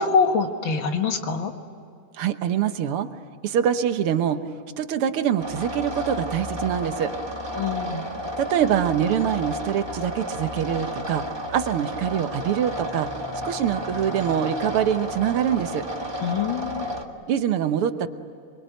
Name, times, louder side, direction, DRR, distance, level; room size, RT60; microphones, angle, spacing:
voice 1, 0.0-1.5 7.5-8.1 16.2-16.9, left 5 dB, 65° left, 5 dB, 2.2 m, -24 dB
voice 2, 2.2-3.1 3.4-4.4 4.8-7.1 8.4-11.3 11.5-13.1 13.4-15.9 17.3-18.1, right 9 dB, 80° right, 9 dB, 2.0 m, -24 dB
sound 1, 5.4-17.0, equal, 10° right, 1.6 m, -32 dB
26.5 x 22.0 x 9.1 m, 2.5 s
omnidirectional pair, 2.4 m